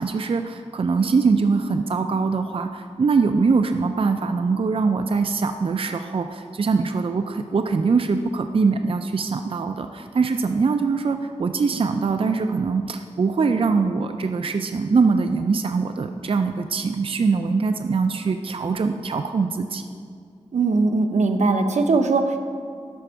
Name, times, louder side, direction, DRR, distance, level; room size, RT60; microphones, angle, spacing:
voice 1, 0.0-19.8, right 4 dB, 50° right, 7 dB, 0.4 m, -22 dB
voice 2, 20.5-22.4, right 3 dB, 85° right, 6 dB, 0.7 m, -20 dB
11.5 x 4.4 x 6.2 m, 2.3 s
wide cardioid pair, 70°, 11 cm